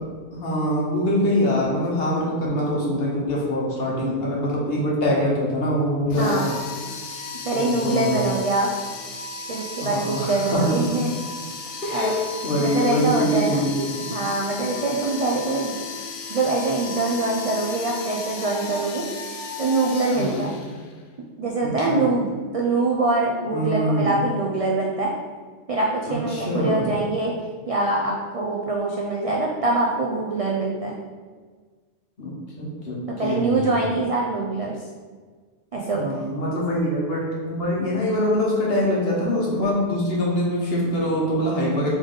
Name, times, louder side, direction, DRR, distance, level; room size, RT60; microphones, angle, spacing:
voice 1, 0.3-6.4 7.5-8.2 9.8-10.7 11.8-12.2 12.4-14.1 20.1-20.5 21.6-22.0 23.5-24.2 26.1-27.0 32.2-33.7 35.8-41.9, equal, 55° left, -4 dB, 1.2 m, -24 dB
sound 1, 6.1-21.0, left 4 dB, 85° left, 1.0 m, -34 dB
voice 2, 6.2-6.6 7.4-8.7 9.5-11.1 11.9-12.2 12.6-13.6 14.1-15.9 16.3-19.1 19.6-20.6 21.4-25.1 25.7-27.3 27.7-31.0 33.1-34.9 35.7-36.2, right 2 dB, 65° right, -2 dB, 0.3 m, -24 dB
3.6 x 3.5 x 3.8 m, 1.5 s
omnidirectional pair, 1.2 m